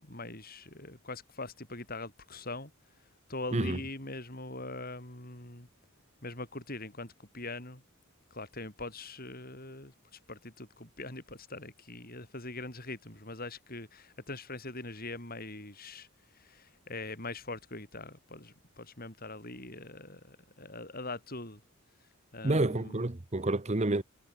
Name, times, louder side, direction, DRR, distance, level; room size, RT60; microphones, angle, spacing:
voice 1, 0.0-2.7 3.3-5.7 6.2-7.8 8.3-16.1 16.3-21.6 22.3-23.0, left 2 dB, 40° left, 6.8 m, -42 dB
voice 2, 22.4-24.0, right 2 dB, 30° right, 0.9 m, -29 dB
head